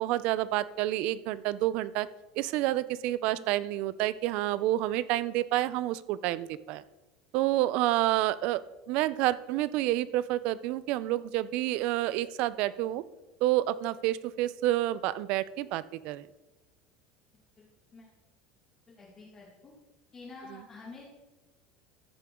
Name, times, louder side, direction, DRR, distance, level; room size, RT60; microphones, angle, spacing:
voice 1, 0.0-2.1 2.4-6.8 7.3-13.0 13.4-16.3 20.5-20.6, right 15 dB, 50° right, 17 dB, 0.4 m, -29 dB
voice 2, 18.9-19.7 20.1-21.0, left 3 dB, 20° left, -4 dB, 1.9 m, -48 dB
14.0 x 6.8 x 3.6 m, 1.1 s
cardioid pair, 170°, 2 cm